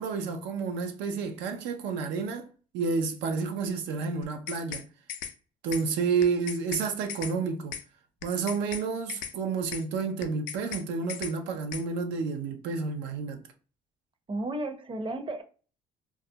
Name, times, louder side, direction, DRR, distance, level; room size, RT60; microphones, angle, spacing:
voice 1, 0.0-2.5 2.7-4.9 5.6-7.7 8.2-13.4, right 5 dB, 80° right, 0.5 m, -30 dB
sound 1, 4.2-4.8 5.1-5.3 5.7-5.8 6.2-6.8 7.1-7.3 7.7-7.8 8.2-8.8 9.1-9.3 9.7-9.8 10.2-10.8 11.1-11.3 11.7-11.8, left 9 dB, 75° left, 0.4 m, -37 dB
voice 2, 14.3-15.4, right 1 dB, 30° right, 0.6 m, -33 dB
2.3 x 2.1 x 2.6 m
supercardioid pair, 70°, 18 cm